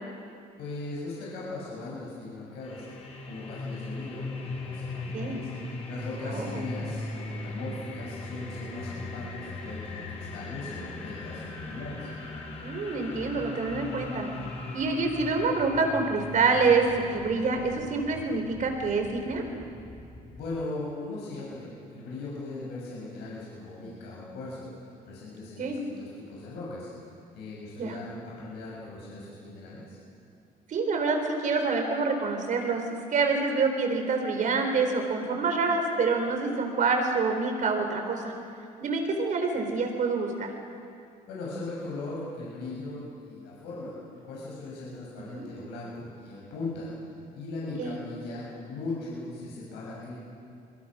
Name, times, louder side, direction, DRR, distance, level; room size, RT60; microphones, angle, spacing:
voice 1, 0.6-2.8 3.2-5.5 5.9-12.1 20.3-24.7 25.1-26.9 27.3-30.0 41.3-46.9 47.3-50.2, left 2 dB, 85° left, -6 dB, 7.1 m, -38 dB
sound 1, 2.6-20.6, left 2 dB, 40° left, 4.7 m, -39 dB
voice 2, 5.0-5.4 6.2-6.7 12.6-14.3 14.7-19.4 25.6-25.8 27.8-28.0 30.7-38.3 38.8-40.5 45.3-45.5 47.8-48.0, right 4 dB, 50° right, 4 dB, 4.5 m, -27 dB
24.0 x 23.0 x 6.3 m, 2.5 s
cardioid pair, 110°, 17 cm